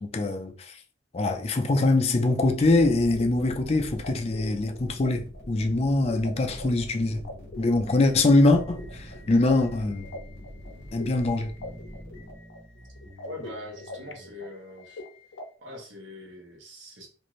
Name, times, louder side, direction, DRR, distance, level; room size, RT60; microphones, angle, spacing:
voice 1, 0.0-0.8 1.1-7.2 7.6-10.1 10.9-11.5, left 2 dB, 35° left, 0.4 m, -23 dB
sound 1, 2.4-12.3, equal, 55° right, 1.4 m, -45 dB
sound 2, 2.6-15.4, left 2 dB, 90° left, 0.5 m, -44 dB
sound 3, 7.1-14.5, equal, 20° right, 0.5 m, -49 dB
voice 2, 13.3-15.0 15.6-17.1, left 1 dB, 75° right, 1.0 m, -42 dB
2.5 x 2.5 x 3.0 m
head